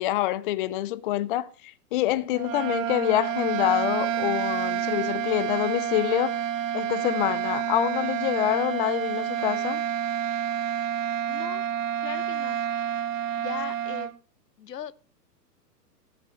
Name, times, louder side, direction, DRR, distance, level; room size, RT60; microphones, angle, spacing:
voice 1, 0.0-6.4 6.7-9.8, left 14 dB, 35° left, 0.6 m, -26 dB
sound 1, 2.3-14.1, right 9 dB, 50° right, 1.0 m, -29 dB
voice 2, 11.3-11.6 12.0-12.6 13.4-14.2 14.6-15.0, left 9 dB, 75° left, 1.0 m, -38 dB
13.0 x 8.1 x 5.3 m
hypercardioid pair, 120°, 49 cm